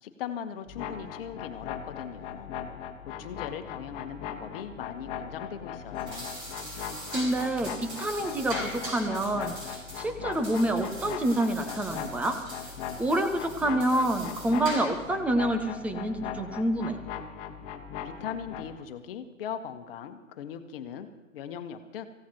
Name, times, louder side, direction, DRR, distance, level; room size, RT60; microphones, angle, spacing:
voice 1, 0.0-2.6 3.0-6.3 18.0-22.0, left 8 dB, 45° left, 8 dB, 1.3 m, -39 dB
sound 1, 0.7-18.8, left 8 dB, 30° left, 1.5 m, -39 dB
sound 2, 5.9-15.1, right 1 dB, 30° right, 7.4 m, -41 dB
voice 2, 7.1-12.4 13.0-17.0, right 1 dB, 5° right, 7 dB, 0.5 m, -28 dB
26.0 x 16.0 x 3.0 m, 1.1 s
figure-of-eight pair, 125°, 39 cm